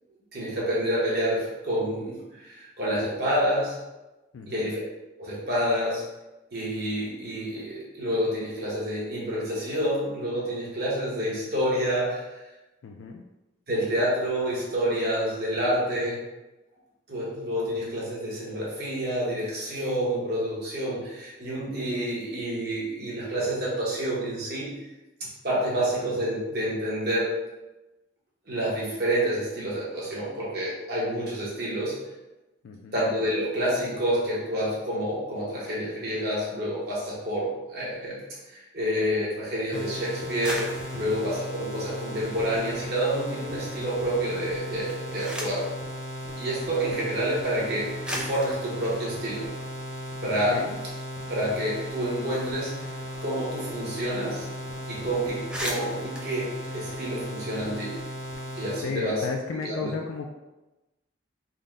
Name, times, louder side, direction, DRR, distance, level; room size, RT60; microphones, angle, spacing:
voice 1, 0.3-3.8 4.5-4.8 5.2-6.0 6.5-12.4 13.7-16.2 17.1-24.7 25.2-27.3 28.5-32.0 32.9-38.2 38.5-45.7 46.4-49.5 50.2-50.6 51.3-52.9 53.2-54.5 54.9-58.0 58.5-59.2 59.6-59.9, equal, 50° right, -6 dB, 1.2 m, -28 dB
voice 2, 4.3-4.6 12.8-13.2 32.6-33.0 40.9-41.2 50.2-50.8 58.8-60.3, left 4 dB, 70° left, 2 dB, 0.3 m, -34 dB
sound 1, 39.7-58.8, left 1 dB, 35° left, 0.7 m, -36 dB
sound 2, 40.4-42.8 43.2-43.9 44.7-45.8 46.8-46.9 47.6-47.7 48.0-50.4 50.7-50.8 51.1-53.7 53.9-54.1 54.4-54.6 55.0-55.1 55.3-57.5, equal, 5° right, 0.3 m, -39 dB
3.8 x 2.2 x 3.7 m, 1.0 s
head